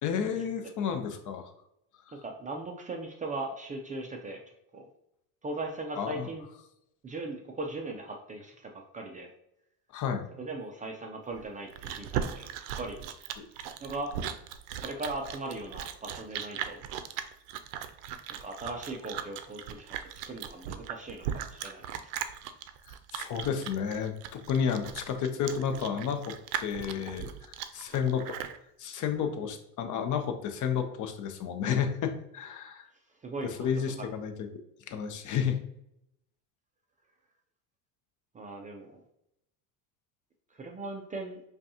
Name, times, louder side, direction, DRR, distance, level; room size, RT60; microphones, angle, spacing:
voice 1, 0.0-1.5 2.1-2.2 6.0-6.3 9.9-10.2 13.4-13.5 22.9-28.4 28.8-32.9 33.4-34.5 34.9-35.6, left 7 dB, 40° left, 6 dB, 0.7 m, -31 dB
voice 2, 2.2-4.4 4.7-4.9 5.4-6.4 7.0-9.3 10.4-12.5 12.8-13.0 13.8-14.2 14.8-16.8 18.3-20.0 20.3-22.1 33.2-33.7 38.3-39.0 40.5-41.4, right 2 dB, 20° right, 2 dB, 0.3 m, -38 dB
Chewing mastication, 11.3-28.6, right 9 dB, 65° right, 0.6 m, -38 dB
5.1 x 2.4 x 2.8 m, 0.79 s
supercardioid pair, 95°, 48 cm